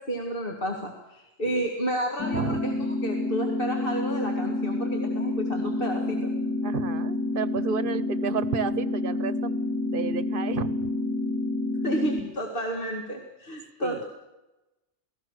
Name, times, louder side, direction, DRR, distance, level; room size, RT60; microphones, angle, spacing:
voice 1, 0.0-6.3 11.8-14.0, right 1 dB, 55° left, 1 dB, 2.3 m, -31 dB
sound 1, 2.2-12.2, left 2 dB, 15° left, 3.1 m, -28 dB
voice 2, 6.6-9.5 9.9-10.9 13.8-14.0, right 6 dB, 55° right, 15 dB, 1.1 m, -32 dB
28.5 x 19.0 x 6.5 m, 1.0 s
omnidirectional pair, 1.1 m